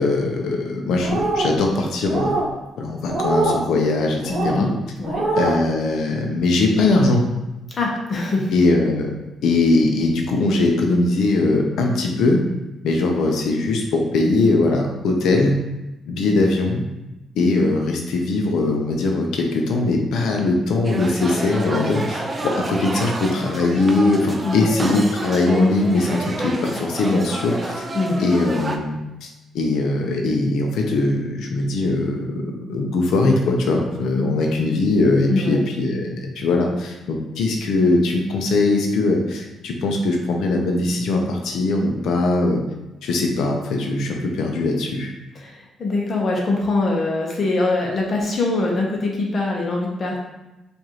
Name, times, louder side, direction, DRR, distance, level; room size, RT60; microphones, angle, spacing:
voice 1, 0.0-2.3 2.8-4.7 5.4-7.2 8.5-9.1 9.4-12.4 12.8-15.6 16.1-16.8 17.4-27.9 28.2-29.3 29.5-42.6 43.0-45.1, left 2 dB, 75° left, 2 dB, 0.6 m, -20 dB
sound 1, 1.0-1.6 2.1-2.5 3.1-3.6 4.2-4.6 5.0-5.6, right 2 dB, 45° right, 1.0 m, -22 dB
voice 2, 4.3-4.7 5.0-5.2 7.8-8.5 24.4-25.0 27.9-28.2 35.3-35.6 45.3-50.2, left 2 dB, 35° left, -2 dB, 0.8 m, -23 dB
sound 2, 20.8-28.8, right 2 dB, 20° right, 0.3 m, -29 dB
4.8 x 2.6 x 2.9 m, 1.0 s
cardioid pair, 140°, 0 cm